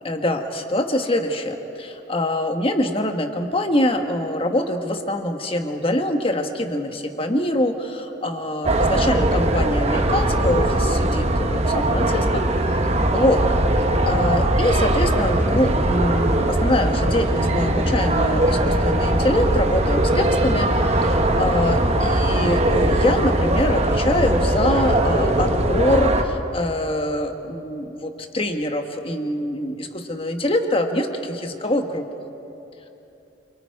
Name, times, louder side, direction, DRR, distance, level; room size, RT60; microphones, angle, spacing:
voice 1, 0.0-12.4 13.1-13.4 14.1-20.7 21.0-32.0, left 1 dB, 30° left, 5 dB, 1.5 m, -24 dB
sound 1, 8.6-26.2, right 1 dB, 35° right, 1.2 m, -20 dB
28.5 x 24.5 x 4.8 m, 3.0 s
head